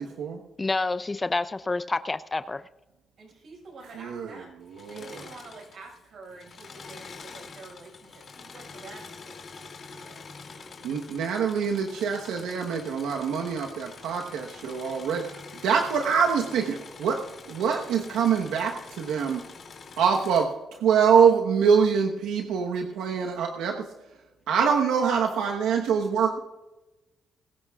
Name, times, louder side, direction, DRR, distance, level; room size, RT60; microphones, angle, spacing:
voice 1, 0.0-0.4 3.9-4.4 4.7-5.2 10.8-17.2 17.5-19.4 20.0-23.9 24.5-26.4, right 6 dB, 90° right, 1 dB, 1.1 m, -25 dB
voice 2, 0.6-2.6, left 3 dB, 20° left, 12 dB, 0.5 m, -28 dB
voice 3, 3.2-4.5 4.9-10.2, right 3 dB, 60° right, 0 dB, 5.7 m, -48 dB
Engine / Mechanisms, 4.7-6.0 6.3-20.4, left 4 dB, 50° left, 2.7 m, -45 dB
22.0 x 13.5 x 2.4 m, 1.1 s
cardioid pair, 90°, 0 cm